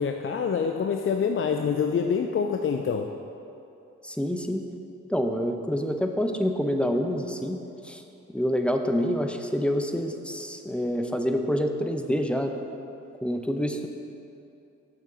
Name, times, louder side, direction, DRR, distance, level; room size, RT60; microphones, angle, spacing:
voice 1, 0.0-3.1, left 6 dB, 40° left, 4 dB, 0.5 m, -26 dB
voice 2, 4.0-4.7 5.1-8.0 8.3-12.6 13.2-13.9, equal, 5° left, 4 dB, 0.7 m, -27 dB
6.7 x 6.7 x 4.9 m, 2.8 s
supercardioid pair, 55°, 31 cm